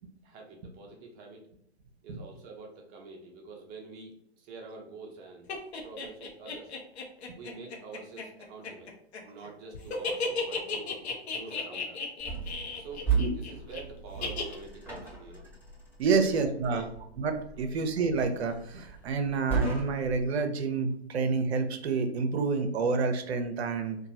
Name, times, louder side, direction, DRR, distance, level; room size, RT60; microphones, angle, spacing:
voice 1, 0.2-1.4 2.0-5.5 5.8-6.8 7.3-8.9 9.2-11.0 11.3-12.1 12.8-15.5 16.1-16.4 16.7-16.9 17.5-17.8, right 3 dB, 30° right, 1 dB, 0.7 m, -46 dB
sound 1, 5.5-9.5 9.7-13.8 14.2-14.6, left 4 dB, 70° left, 0.7 m, -34 dB
sound 2, 12.2-20.3, right 5 dB, 5° left, 1.2 m, -36 dB
voice 2, 16.0-16.8 17.2-24.0, right 4 dB, 70° right, 7 dB, 0.6 m, -28 dB
2.9 x 2.3 x 2.7 m, 0.71 s
hypercardioid pair, 110°, 33 cm